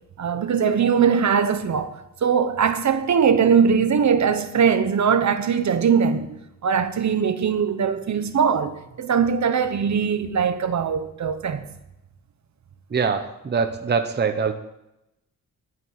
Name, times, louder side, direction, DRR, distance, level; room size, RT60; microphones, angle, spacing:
voice 1, 0.2-11.6, right 7 dB, 55° right, 1.2 m, -21 dB
voice 2, 12.9-14.5, right 5 dB, 30° right, 0.9 m, -23 dB
11.5 x 9.5 x 9.2 m
wide cardioid pair, 140°, 33 cm